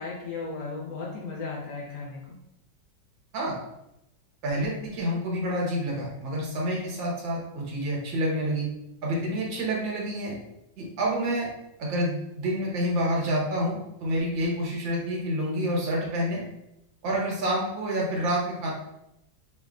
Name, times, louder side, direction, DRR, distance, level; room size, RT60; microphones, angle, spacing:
voice 1, 0.0-2.4, left 4 dB, 65° left, -4 dB, 1.5 m, -35 dB
voice 2, 4.4-8.7 9.0-10.4 10.8-11.5 11.8-16.4 17.0-18.7, equal, 85° right, -4 dB, 1.9 m, -28 dB
5.3 x 2.6 x 2.4 m, 0.86 s
omnidirectional pair, 2.0 m